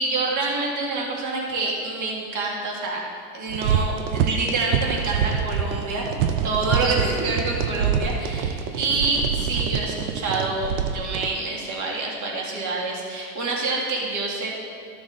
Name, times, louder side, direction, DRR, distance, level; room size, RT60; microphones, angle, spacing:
voice 1, 0.0-3.0 3.3-6.1 6.4-14.5, right 3 dB, 40° right, -1 dB, 2.1 m, -27 dB
sound 1, 3.5-11.3, right 7 dB, 85° right, 0.8 m, -26 dB
13.0 x 6.2 x 3.7 m, 2.2 s
supercardioid pair, 115°, 45 cm